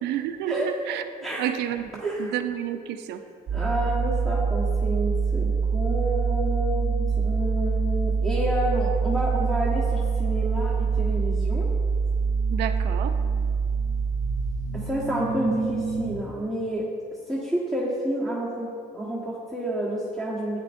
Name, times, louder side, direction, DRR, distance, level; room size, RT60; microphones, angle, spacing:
voice 1, 0.0-1.0 1.4-3.2 12.5-13.1, right 10 dB, 80° right, 8 dB, 0.6 m, -30 dB
voice 2, 2.0-2.3 3.5-11.7 14.7-16.9 17.3-20.6, right 1 dB, ahead, -8 dB, 1.4 m, -29 dB
sound 1, 3.5-16.2, right 5 dB, 45° right, 0.8 m, -25 dB
11.5 x 9.2 x 2.6 m, 2.3 s
cardioid pair, 110°, 17 cm